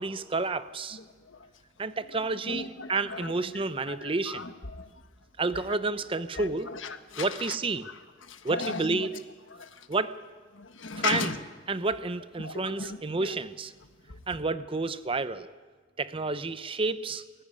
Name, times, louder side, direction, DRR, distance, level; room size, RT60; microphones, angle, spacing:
voice 1, 0.0-1.0 1.8-4.4 5.4-6.7 7.2-7.9 8.4-9.1 9.9-10.2 10.9-11.3 11.7-13.7 14.3-15.5 16.0-17.2, right 3 dB, 30° right, 0.7 m, -30 dB
voice 2, 0.9-1.5 2.1-4.9 5.5-5.8 6.3-7.6 7.8-9.1 9.5-9.9 10.5-11.4 12.4-13.4 14.1-14.2, left 4 dB, 85° left, 1.4 m, -37 dB
19.5 x 14.5 x 9.8 m
head